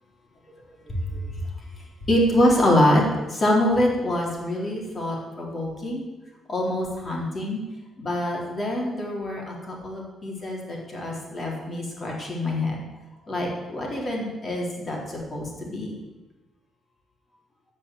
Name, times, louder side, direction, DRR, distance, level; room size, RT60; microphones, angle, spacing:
voice 1, 0.8-1.4 2.0-3.0 3.3-6.0 6.5-7.6 8.0-12.8 13.3-15.9, left 1 dB, 35° left, -1 dB, 3.8 m, -25 dB
14.5 x 5.6 x 7.6 m, 1.1 s
cardioid pair, 90°, 0 cm